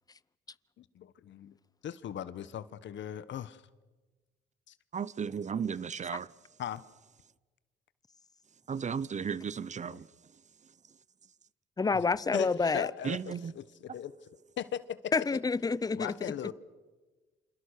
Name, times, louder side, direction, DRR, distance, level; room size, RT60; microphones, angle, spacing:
voice 1, 0.8-1.5 1.8-3.6 4.7-4.8 6.6-6.8 9.9-10.0 11.9-12.0 12.3-14.1 14.6-15.1 15.9-16.5, left 10 dB, 70° left, 1.2 m, -39 dB
voice 2, 4.9-6.3 8.7-10.1 13.0-13.5, right 6 dB, 35° right, 0.7 m, -34 dB
voice 3, 11.8-12.9 15.1-16.1, left 4 dB, 20° left, 0.7 m, -28 dB
28.0 x 27.5 x 6.6 m
cardioid pair, 90°, 20 cm